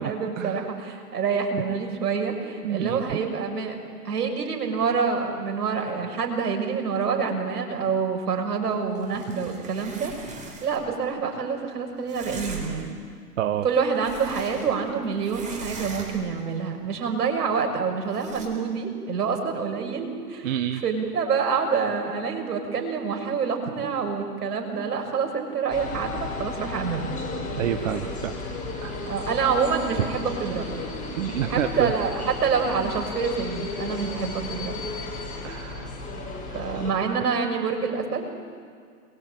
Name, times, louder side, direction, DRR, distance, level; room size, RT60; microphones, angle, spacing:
voice 1, 0.0-12.9 13.6-27.1 29.1-30.8 31.5-34.8 36.5-38.3, right 5 dB, 70° right, 3 dB, 6.5 m, -27 dB
voice 2, 2.6-3.0 13.4-13.6 20.4-20.8 27.6-28.3 28.8-29.0 31.2-31.9 35.4-35.9 36.5-36.6, right 11 dB, 50° right, 8 dB, 1.3 m, -28 dB
sound 1, 8.9-10.9 12.1-12.9 13.6-14.9 15.2-16.4 18.1-18.5, right 4 dB, 15° right, 4.3 m, -40 dB
sound 2, 25.7-36.9, left 2 dB, 15° left, 5.1 m, -34 dB
28.0 x 23.0 x 9.2 m, 2.1 s
hypercardioid pair, 140°, 48 cm